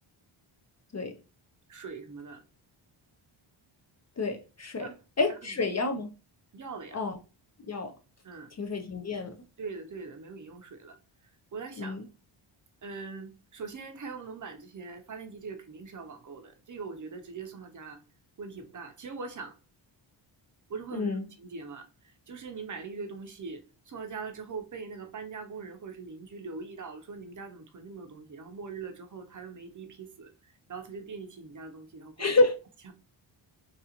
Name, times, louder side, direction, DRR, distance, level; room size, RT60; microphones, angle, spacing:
voice 1, 1.7-2.4 4.8-5.0 6.5-7.0 8.2-8.5 9.6-11.0 11.5-12.0 12.8-18.0 18.4-19.6 20.7-21.1 21.4-32.3 32.9-33.0, right 4 dB, 40° right, 0.6 m, -42 dB
voice 2, 4.2-4.9 5.2-6.1 6.9-7.2 7.7-7.9 8.6-9.3 11.8-12.0 20.9-21.2 32.2-32.6, left 3 dB, 35° left, 0.4 m, -28 dB
3.7 x 2.4 x 2.8 m
cardioid pair, 110°, 50 cm